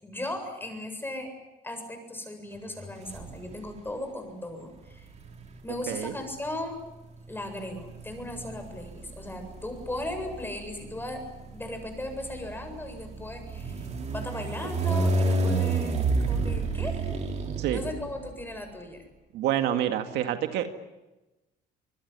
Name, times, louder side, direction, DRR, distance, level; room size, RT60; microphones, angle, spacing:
voice 1, 0.0-1.3 1.6-5.1 5.6-6.8 7.3-11.2 11.5-15.9 16.3-17.0 17.7-19.0, left 1 dB, 10° left, 6 dB, 7.5 m, -37 dB
sound 1, 3.1-3.8 4.8-18.5, right 3 dB, 40° right, 4.9 m, -31 dB
voice 2, 19.3-20.7, right 11 dB, 80° right, 7 dB, 2.1 m, -27 dB
25.5 x 21.0 x 9.8 m, 1.0 s
cardioid pair, 110°, 17 cm